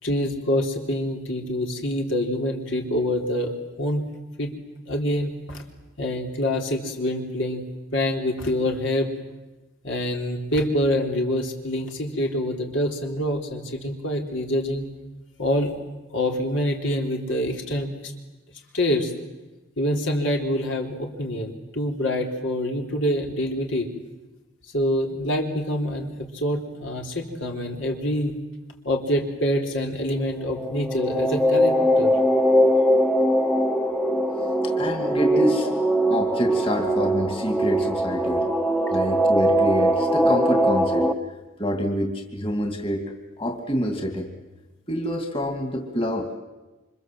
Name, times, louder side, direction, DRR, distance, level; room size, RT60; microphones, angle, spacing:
voice 1, 0.0-3.5 3.8-4.0 4.4-4.5 4.9-5.6 6.0-7.6 7.9-9.2 9.8-14.9 15.4-15.7 16.1-18.1 18.7-19.1 19.8-23.9 24.7-28.3 28.8-32.2, left 1 dB, 70° left, 2 dB, 3.9 m, -26 dB
sound 1, 30.5-41.1, equal, 5° left, 1.2 m, -21 dB
voice 2, 34.6-35.7 36.1-38.5 38.9-41.1 41.6-43.0 43.4-44.3 44.9-46.4, equal, 25° left, 4 dB, 2.8 m, -27 dB
29.0 x 26.0 x 7.8 m, 1.1 s
head